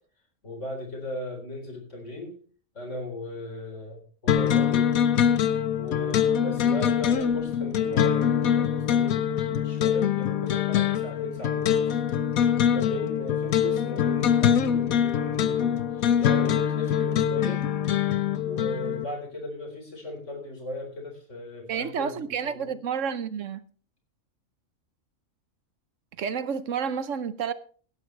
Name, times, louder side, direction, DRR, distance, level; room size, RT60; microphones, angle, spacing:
voice 1, 0.4-2.4 2.7-4.9 5.4-12.0 12.4-17.6 18.4-22.7, left 2 dB, 60° left, 4.4 m, -37 dB
sound 1, 4.3-19.0, left 9 dB, 85° left, 1.3 m, -24 dB
voice 2, 21.7-23.6 26.2-27.5, right 7 dB, 65° right, 1.1 m, -30 dB
17.0 x 11.5 x 3.3 m
omnidirectional pair, 1.4 m